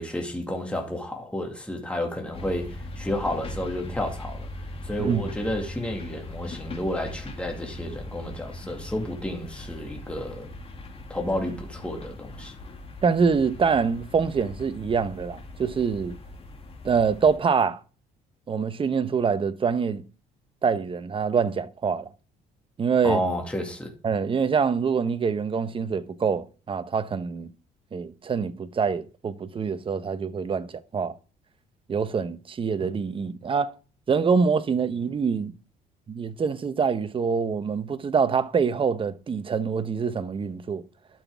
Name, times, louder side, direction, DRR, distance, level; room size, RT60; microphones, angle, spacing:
voice 1, 0.0-4.5 4.8-10.5 11.1-12.5 23.0-23.9, left 1 dB, 5° left, 2.3 m, -31 dB
sound 1, 2.3-17.4, left 2 dB, 35° left, 2.4 m, -40 dB
voice 2, 13.0-16.2 16.8-17.8 18.5-20.0 20.6-22.1 22.8-23.2 24.0-27.5 27.9-30.7 30.9-31.1 31.9-33.7 34.1-35.5 36.1-40.8, right 5 dB, 30° right, 1.0 m, -25 dB
12.0 x 6.0 x 3.5 m
cardioid pair, 110°, 17 cm